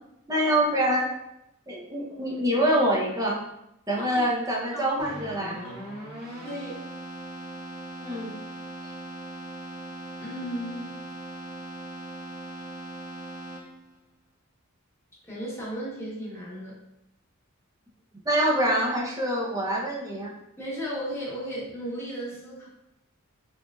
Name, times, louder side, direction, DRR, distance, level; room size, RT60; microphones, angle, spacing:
voice 1, 0.3-1.0 1.7-3.4 3.9-5.6 8.0-8.3 18.2-20.3, right 1 dB, 15° right, -3 dB, 0.7 m, -25 dB
Keyboard (musical), 5.0-14.0, right 1 dB, 50° right, 1.4 m, -40 dB
voice 2, 6.4-6.8 10.2-10.9 15.2-16.8 20.6-22.7, equal, 10° left, -6 dB, 1.2 m, -35 dB
4.8 x 3.1 x 2.4 m, 0.86 s
head